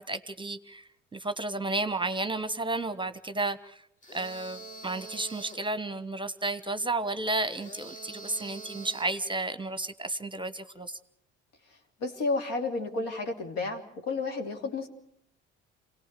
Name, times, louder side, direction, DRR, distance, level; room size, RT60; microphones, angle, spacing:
voice 1, 0.0-3.9 4.1-11.0, right 2 dB, 15° right, 12 dB, 1.1 m, -32 dB
sound 1, 4.0-5.7 7.5-9.2, right 2 dB, 20° left, 2.4 m, -45 dB
voice 2, 11.7-14.9, left 3 dB, 70° left, 3 dB, 3.1 m, -32 dB
28.5 x 18.0 x 6.8 m, 0.72 s
hypercardioid pair, 55°, 33 cm